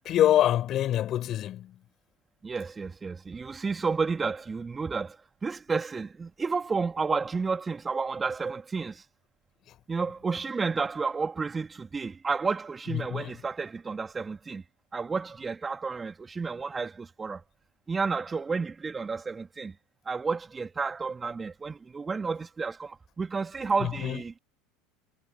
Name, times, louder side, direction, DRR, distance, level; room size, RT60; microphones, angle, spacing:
voice 1, 0.0-1.7 12.9-13.3 23.8-24.2, left 12 dB, 45° left, 4.9 m, -25 dB
voice 2, 2.4-9.0 9.9-14.6 14.9-17.4 17.9-19.8 20.1-24.4, right 4 dB, 20° right, 2.1 m, -31 dB
figure-of-eight pair, 75°, 0 cm